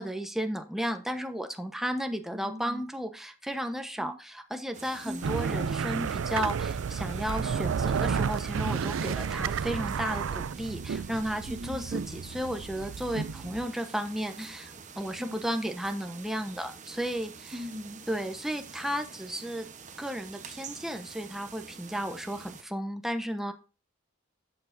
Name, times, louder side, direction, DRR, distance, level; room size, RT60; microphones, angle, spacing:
voice 1, 0.0-17.6 18.1-19.7 20.0-23.5, equal, ahead, 6 dB, 1.0 m, -34 dB
voice 2, 2.3-2.8 4.0-4.2 5.0-5.3 11.5-11.9 15.2-15.4 17.5-18.0, left 1 dB, 20° right, 4 dB, 1.6 m, -40 dB
sound 1, 4.7-22.6, right 6 dB, 40° right, 1.0 m, -47 dB
sound 2, 5.2-13.6, right 6 dB, 80° right, 0.4 m, -31 dB
11.5 x 8.2 x 2.6 m, 0.32 s
head